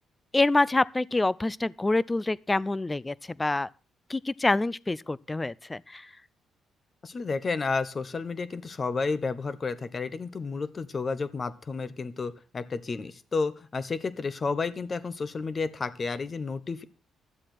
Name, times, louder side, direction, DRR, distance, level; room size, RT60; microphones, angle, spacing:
voice 1, 0.3-3.7 4.1-6.1, left 2 dB, 15° left, 0.5 m, -26 dB
voice 2, 7.0-16.8, left 4 dB, 35° left, 1.1 m, -31 dB
12.0 x 7.7 x 6.0 m
cardioid pair, 90°, 0 cm